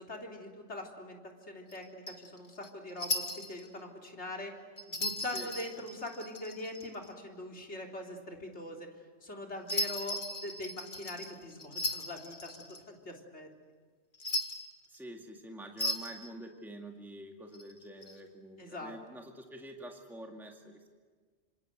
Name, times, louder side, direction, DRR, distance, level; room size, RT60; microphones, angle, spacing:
voice 1, 0.0-4.5 4.9-8.9 9.2-13.5 18.6-18.9, left 1 dB, 75° left, 1 dB, 3.9 m, -42 dB
sound 1, 1.7-3.7 4.8-7.1 9.7-12.8 14.1-15.0 15.8-16.3 17.5-18.2, left 1 dB, 45° left, 2.1 m, -37 dB
voice 2, 14.9-20.9, right 1 dB, ahead, 2 dB, 2.1 m, -47 dB
27.0 x 26.5 x 8.0 m, 1.5 s
omnidirectional pair, 1.2 m